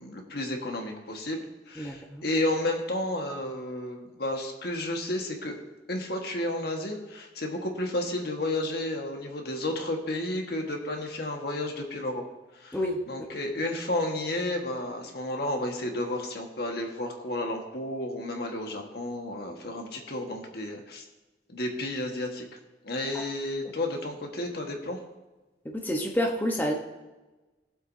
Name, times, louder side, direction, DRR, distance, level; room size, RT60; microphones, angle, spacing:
voice 1, 0.0-5.6 5.9-12.2 12.5-12.8 13.1-21.0 21.5-22.5 22.8-25.0, left 1 dB, 65° left, 2 dB, 1.6 m, -32 dB
voice 2, 1.8-2.2 12.7-13.0 25.7-26.7, equal, 10° left, 0 dB, 1.1 m, -28 dB
18.5 x 7.8 x 2.8 m, 1.2 s
head